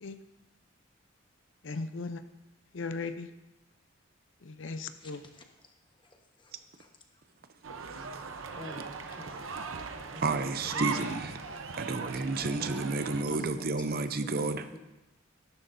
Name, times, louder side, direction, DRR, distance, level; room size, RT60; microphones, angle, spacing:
voice 1, 1.6-2.2 2.7-3.3 4.4-5.2, left 3 dB, 65° left, 10 dB, 0.6 m, -37 dB
voice 2, 5.0-5.4 6.0-6.9 8.5-9.7 10.0-12.1 12.4-12.7 13.3-14.1 14.4-14.8, left 1 dB, 25° left, 3 dB, 1.2 m, -48 dB
sound 1, 7.6-13.2, right 4 dB, 85° right, 0.8 m, -39 dB
voice 3, 10.2-11.4 11.8-14.8, right 3 dB, 50° right, 10 dB, 0.6 m, -31 dB
14.0 x 12.5 x 2.7 m, 1.0 s
head